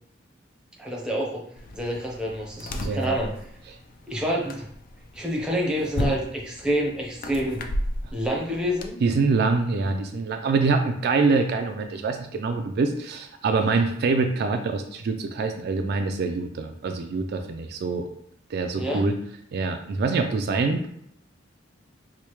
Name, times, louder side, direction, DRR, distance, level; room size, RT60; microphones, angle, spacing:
voice 1, 0.8-1.4 1.7-3.3 4.1-4.7 5.1-7.6 8.1-9.0 18.8-19.1, equal, 5° right, -2 dB, 0.7 m, -27 dB
sound 1, 1.6-8.9, left 1 dB, 50° left, 0.4 m, -34 dB
voice 2, 2.8-3.2 9.0-18.1 18.5-19.2 19.5-20.9, right 4 dB, 55° right, 5 dB, 0.3 m, -25 dB
4.7 x 2.1 x 3.0 m, 0.70 s
head